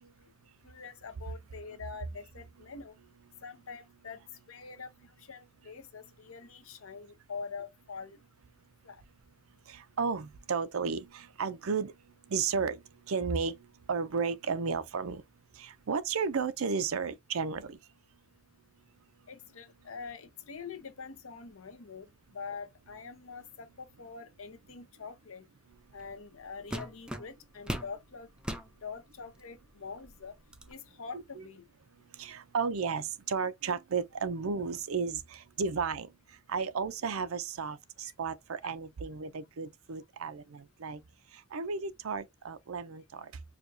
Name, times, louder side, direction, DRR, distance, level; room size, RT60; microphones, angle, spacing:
voice 1, 0.6-2.9 3.4-4.9 5.2-8.2 8.8-9.0 19.3-22.1 22.3-25.4 25.9-28.3 28.8-30.3 30.7-31.6 38.0-38.1, left 5 dB, 75° left, 0.8 m, -44 dB
voice 2, 9.7-11.9 12.3-15.2 15.6-17.8 31.4-31.5 32.1-36.1 36.5-41.0 41.3-43.3, right 5 dB, 85° right, 0.5 m, -33 dB
sound 1, 26.0-26.2 26.7-27.9 28.4-28.7 29.4-29.5 30.0-30.7, equal, 5° right, 0.5 m, -38 dB
4.9 x 2.3 x 2.6 m
head